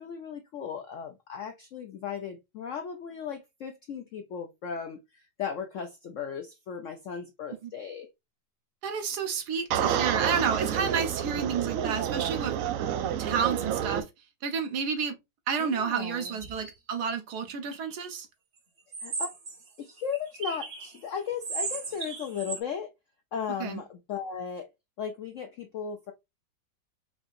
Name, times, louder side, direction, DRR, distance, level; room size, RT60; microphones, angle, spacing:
voice 1, 0.0-8.1 15.6-16.4 19.0-19.3 19.8-22.9 23.3-24.7 25.0-26.1, left 7 dB, 75° left, 0.7 m, -36 dB
voice 2, 8.8-12.6 13.2-14.1 14.4-15.2 15.5-18.3 23.6-23.8, right 6 dB, 70° right, 1.2 m, -30 dB
sound 1, 9.7-14.0, right 9 dB, 90° right, 0.7 m, -29 dB
sound 2, 16.1-16.7 17.7-18.1 18.9-21.0 21.4-22.6, right 4 dB, 45° right, 1.0 m, -37 dB
4.8 x 2.6 x 2.4 m
omnidirectional pair, 2.0 m